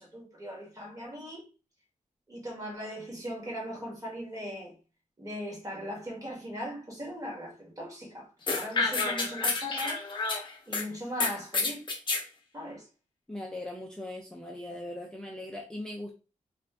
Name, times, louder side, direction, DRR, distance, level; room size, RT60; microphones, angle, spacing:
voice 1, 0.0-1.4 2.3-4.7 5.2-10.0 10.7-11.9 12.5-12.9, equal, 25° right, 1.2 m, -39 dB
sound 1, 8.5-10.8 11.2-12.2, left 3 dB, 35° left, 0.7 m, -29 dB
voice 2, 13.3-16.1, left 1 dB, 5° left, 0.4 m, -39 dB
2.5 x 2.5 x 3.3 m
wide cardioid pair, 180°, 14 cm